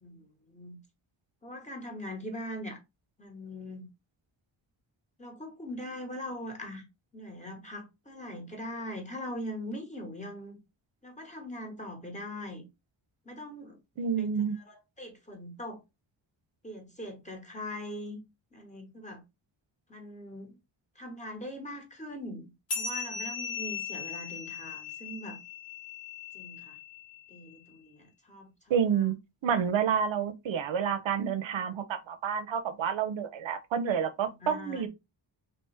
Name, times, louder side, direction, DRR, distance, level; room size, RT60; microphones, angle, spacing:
voice 1, 0.0-0.8 1.4-2.8 3.2-3.8 5.2-6.8 7.1-10.6 11.0-12.6 13.2-13.8 14.2-14.3 14.6-15.8 16.6-18.2 18.5-19.2 19.9-20.5 20.9-25.4 26.3-26.8 27.3-29.0 34.4-34.9, left 1 dB, 15° left, 1.2 m, -41 dB
voice 2, 14.0-14.6 28.7-29.1 29.4-34.9, right 7 dB, 70° right, 0.6 m, -29 dB
sound 1, 22.7-27.6, left 6 dB, 90° left, 1.3 m, -38 dB
3.2 x 3.0 x 3.3 m
wide cardioid pair, 115°, 48 cm